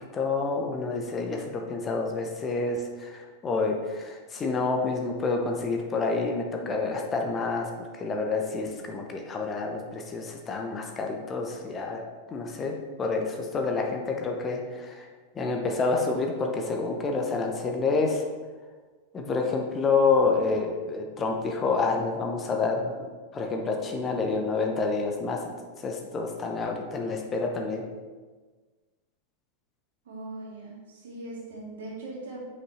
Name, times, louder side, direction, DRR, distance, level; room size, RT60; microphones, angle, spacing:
voice 1, 0.1-7.7 8.0-12.0 12.3-15.1 15.4-18.2 19.1-25.4 25.8-27.8, left 4 dB, 25° left, 2 dB, 0.9 m, -28 dB
voice 2, 30.1-32.5, right 2 dB, 60° right, -4 dB, 2.3 m, -40 dB
6.4 x 5.6 x 4.3 m, 1.3 s
figure-of-eight pair, 90°, 0 cm